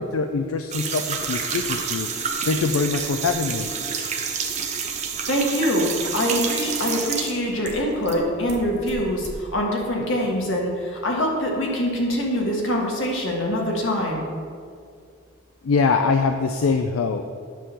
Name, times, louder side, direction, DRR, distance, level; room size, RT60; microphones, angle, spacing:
voice 1, 0.0-2.1 2.5-3.7 15.6-17.3, left 4 dB, 80° left, 6 dB, 0.4 m, -23 dB
sound 1, 0.7-8.2 8.5-9.3, right 6 dB, 35° right, 0.7 m, -29 dB
voice 2, 5.3-14.2, equal, 60° left, -1 dB, 1.6 m, -24 dB
10.0 x 3.7 x 6.8 m, 2.2 s
head